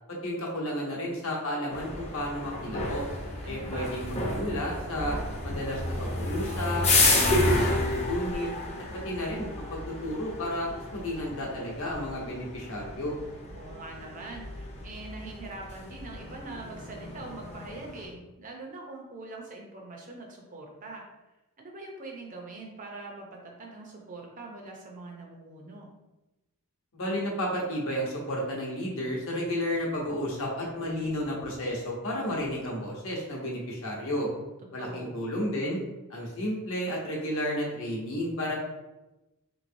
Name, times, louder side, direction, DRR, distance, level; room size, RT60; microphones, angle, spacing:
voice 1, 0.1-3.0 3.5-5.2 5.4-8.5 9.0-13.1 26.9-34.3 34.7-35.8 36.1-38.6, equal, 60° left, -2 dB, 0.9 m, -32 dB
sound 1, 1.7-18.1, left 2 dB, 30° left, 0.6 m, -31 dB
voice 2, 3.4-4.0 13.5-21.0 21.6-25.9 34.6-35.2, right 2 dB, 35° right, 0 dB, 0.6 m, -43 dB
3.5 x 3.1 x 2.6 m, 1.0 s
head